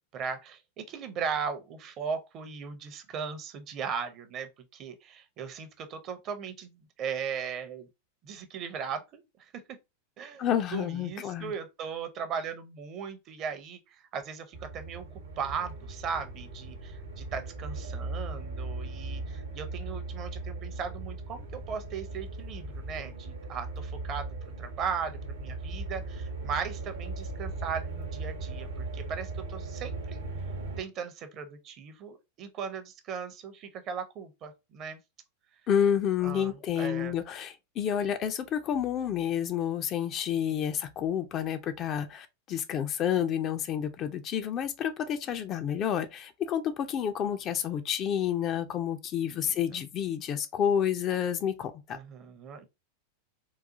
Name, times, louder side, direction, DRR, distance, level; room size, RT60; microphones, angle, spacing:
voice 1, 0.0-7.9 8.2-9.8 10.2-10.4 10.7-15.0 15.4-24.3 24.6-30.2 30.8-35.0 36.2-37.1 40.5-40.8 49.2-49.6 51.9-52.7, right 6 dB, 35° right, 0.6 m, -38 dB
voice 2, 10.4-11.5 35.7-52.0, left 9 dB, 30° left, 0.4 m, -29 dB
sound 1, 14.5-30.8, right 3 dB, 65° right, 0.7 m, -38 dB
3.8 x 2.3 x 2.6 m
figure-of-eight pair, 90°, 0 cm